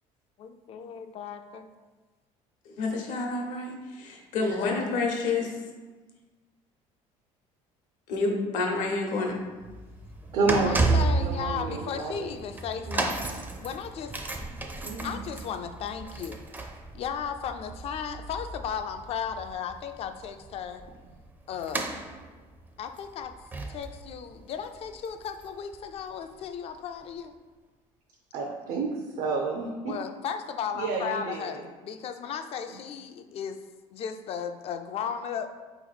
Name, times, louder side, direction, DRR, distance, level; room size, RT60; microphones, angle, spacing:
voice 1, 0.4-1.7 10.5-14.5 15.0-16.4 16.9-20.8 21.5-22.0 22.8-23.3 23.7-27.3 29.9-33.6 33.9-35.5, left 7 dB, 50° left, 8 dB, 0.4 m, -35 dB
voice 2, 2.7-5.6 8.1-9.4, left 3 dB, 75° left, 1 dB, 0.9 m, -29 dB
sound 1, 9.4-25.8 26.0-26.3 27.0-27.1, right 3 dB, 15° right, 0.4 m, -33 dB
voice 3, 10.3-12.3 12.9-13.0 14.8-15.2 28.3-29.9 30.7-31.7, right 4 dB, 70° right, 1 dB, 0.5 m, -30 dB
4.3 x 2.9 x 4.0 m, 1.3 s
cardioid pair, 120°, 13 cm